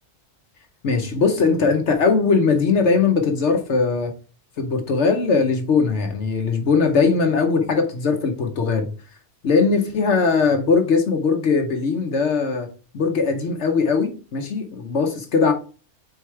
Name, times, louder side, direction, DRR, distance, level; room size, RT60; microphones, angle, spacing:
voice 1, 0.8-4.1 4.6-8.9 9.4-12.7 12.9-15.5, left 4 dB, 70° left, 5 dB, 1.1 m, -20 dB
4.7 x 4.5 x 4.4 m, 0.37 s
omnidirectional pair, 1.2 m